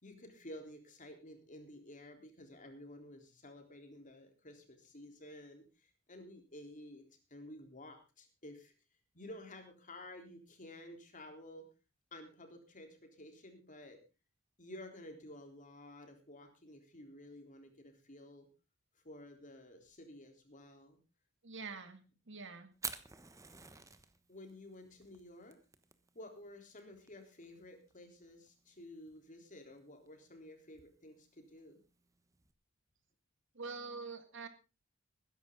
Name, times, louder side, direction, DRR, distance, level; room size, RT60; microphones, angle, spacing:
voice 1, 0.0-7.0 7.3-8.7 9.1-11.7 12.1-14.0 14.6-18.5 19.0-21.0 24.3-25.6 26.1-31.8, left 1 dB, 40° left, 4 dB, 3.7 m, -52 dB
voice 2, 21.4-22.0 22.3-22.7 33.5-34.5, right 4 dB, 60° right, 9 dB, 2.1 m, -45 dB
Fire, 22.7-32.5, right 4 dB, 15° right, 1.2 m, -51 dB
20.5 x 10.5 x 3.8 m, 0.30 s
head